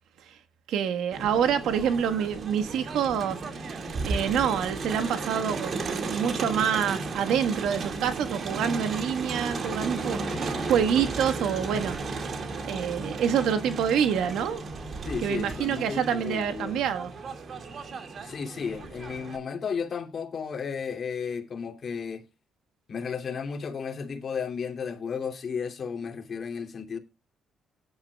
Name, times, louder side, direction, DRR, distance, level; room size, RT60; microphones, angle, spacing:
voice 1, 0.7-3.4 4.0-12.0 12.3-12.4 12.7-14.6 15.2-17.1, right 8 dB, 85° right, 1.4 m, -27 dB
Crowd, 1.1-19.4, right 4 dB, 50° right, 2.1 m, -35 dB
sound 1, 3.2-17.8, equal, 25° right, 3.6 m, -43 dB
voice 2, 15.0-16.8 18.2-22.2 22.9-27.0, left 6 dB, 50° left, 2.6 m, -33 dB
18.0 x 10.5 x 2.3 m
cardioid pair, 90°, 0 cm